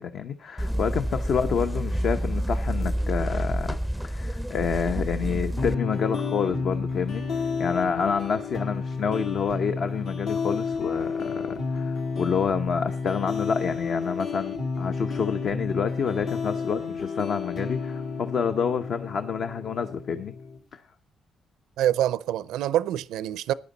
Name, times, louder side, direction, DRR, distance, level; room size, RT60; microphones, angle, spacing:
voice 1, 0.0-3.8 4.0-7.2 7.6-20.3 20.7-20.8, left 6 dB, 60° left, 0.8 m, -28 dB
sound 1, 0.6-5.7, equal, 5° left, 0.5 m, -28 dB
sound 2, 5.6-20.6, left 4 dB, 75° left, 3.0 m, -31 dB
voice 2, 21.8-23.5, right 12 dB, 90° right, 0.5 m, -25 dB
14.5 x 10.5 x 4.0 m
cardioid pair, 90°, 0 cm